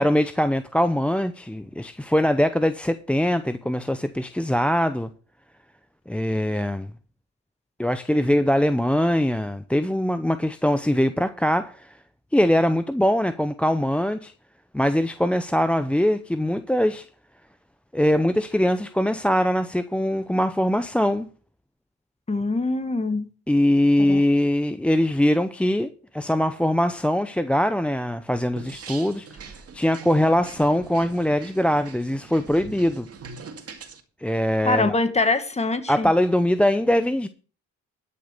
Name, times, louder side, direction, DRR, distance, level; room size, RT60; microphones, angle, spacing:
voice 1, 0.0-5.1 6.1-6.9 7.8-12.0 12.3-14.3 14.7-17.1 17.9-21.3 23.5-29.3 29.7-33.1 34.2-34.9 35.9-37.3, left 1 dB, 5° left, 0.6 m, -22 dB
voice 2, 22.3-23.3 24.1-24.2 34.6-36.1, left 3 dB, 20° left, 1.8 m, -23 dB
sound 1, 28.6-34.0, right 5 dB, 50° right, 2.3 m, -42 dB
12.0 x 6.7 x 6.7 m
cardioid pair, 90°, 30 cm